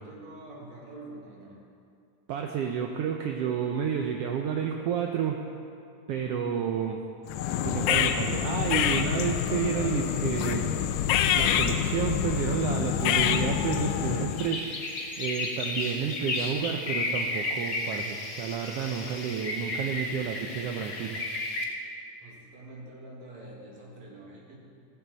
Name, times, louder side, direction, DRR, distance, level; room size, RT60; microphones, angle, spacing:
voice 1, 0.0-1.6 22.2-24.6, right 2 dB, 60° right, -3 dB, 3.3 m, -46 dB
voice 2, 2.3-5.4 6.1-7.0 7.6-10.7 11.3-21.2, right 7 dB, 75° right, 2 dB, 1.4 m, -30 dB
sound 1, 7.3-14.5, left 9 dB, 85° left, 2.2 m, -26 dB
sound 2, 14.3-21.6, left 2 dB, 45° left, 1.3 m, -33 dB
15.5 x 15.0 x 4.0 m, 2.5 s
omnidirectional pair, 3.5 m